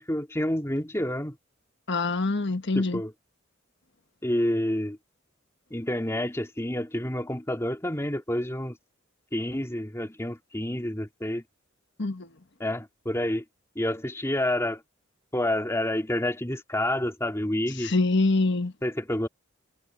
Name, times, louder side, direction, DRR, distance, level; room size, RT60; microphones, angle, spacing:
voice 1, 0.0-1.4 2.7-3.1 4.2-5.0 5.7-8.8 9.3-11.4 12.6-13.4 13.8-14.8 15.3-17.9 18.8-19.3, left 1 dB, 15° left, 2.5 m, -28 dB
voice 2, 1.9-3.0 12.0-12.3 17.8-18.7, left 3 dB, 60° left, 1.4 m, -25 dB
head